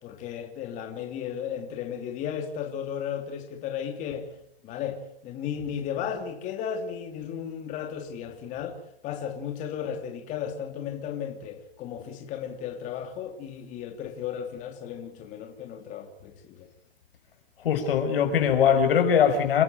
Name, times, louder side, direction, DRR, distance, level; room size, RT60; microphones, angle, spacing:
voice 1, 0.0-4.3 4.6-8.8 9.0-16.7, left 8 dB, 25° left, 3.1 m, -35 dB
voice 2, 17.6-19.6, left 8 dB, 75° left, 6.4 m, -21 dB
28.5 x 12.5 x 9.5 m
hypercardioid pair, 160°, 29 cm